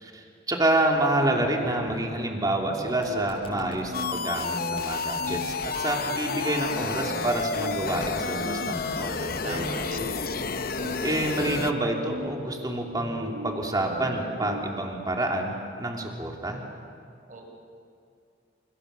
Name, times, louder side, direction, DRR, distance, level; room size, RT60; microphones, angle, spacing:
voice 1, 0.0-9.7 11.0-16.6, right 1 dB, 20° right, 0 dB, 3.0 m, -28 dB
sound 1, 0.9-14.6, right 1 dB, 85° right, 2.6 m, -39 dB
sound 2, 2.8-4.1 4.4-4.5 4.8-4.9 5.1-6.1 6.4-6.5 6.8-6.9 7.2-8.1 8.4-8.5 8.8-8.9 9.1-10.1 10.4-10.7, left 1 dB, 30° left, 6.1 m, -45 dB
sound 3, 3.9-11.7, left 4 dB, 50° left, 0.9 m, -31 dB
voice 2, 8.6-9.1 9.4-10.1 17.3-17.4, right 2 dB, 45° right, 1 dB, 5.5 m, -41 dB
29.0 x 28.0 x 6.9 m, 2.4 s
head